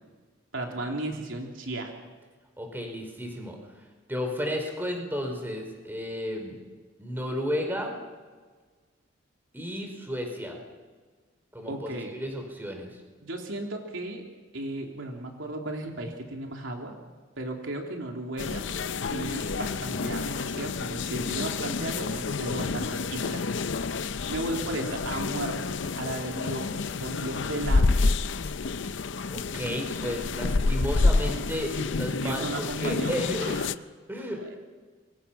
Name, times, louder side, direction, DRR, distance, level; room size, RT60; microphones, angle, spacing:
voice 1, 0.5-1.9 11.7-12.2 13.2-14.2 14.5-17.0 17.4-18.7 19.1-23.4 24.3-27.9 32.2-33.1 33.4-33.7 34.1-34.6, right 2 dB, 75° right, 1 dB, 3.3 m, -35 dB
voice 2, 2.6-6.7 7.0-7.9 9.5-10.6 11.5-13.0 29.3-33.6 34.1-34.4, equal, 10° right, 3 dB, 4.6 m, -33 dB
sound 1, 18.4-33.7, left 3 dB, 65° left, 0.6 m, -29 dB
27.0 x 23.5 x 5.9 m, 1.4 s
head